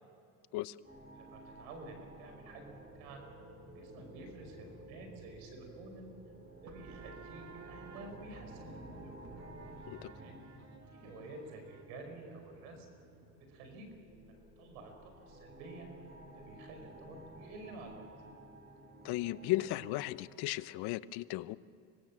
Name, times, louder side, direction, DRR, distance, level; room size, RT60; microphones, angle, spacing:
sound 1, 0.8-20.1, right 1 dB, 25° right, 6.8 m, -53 dB
voice 1, 1.1-3.2 3.7-6.2 6.5-9.1 10.1-10.5 10.9-12.9 13.5-13.9 14.2-15.9 16.3-18.1, right 2 dB, 85° right, 4 dB, 5.3 m, -50 dB
sound 2, 6.7-14.0, right 5 dB, 45° right, 2.0 m, -56 dB
voice 2, 19.0-21.6, left 17 dB, 70° left, 17 dB, 0.8 m, -35 dB
25.5 x 19.0 x 7.4 m, 2.5 s
supercardioid pair, 90°, 39 cm